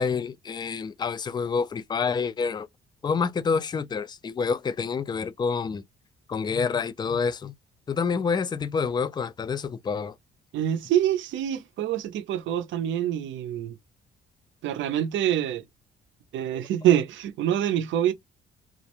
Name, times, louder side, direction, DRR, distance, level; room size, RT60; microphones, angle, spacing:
voice 1, 0.0-2.7 3.0-5.8 6.3-7.5 7.9-10.1, left 5 dB, 20° left, 0.3 m, -27 dB
voice 2, 10.5-13.7 14.6-15.6 16.3-18.1, right 11 dB, 75° right, 0.5 m, -25 dB
2.4 x 2.0 x 2.9 m
cardioid pair, 90°, 20 cm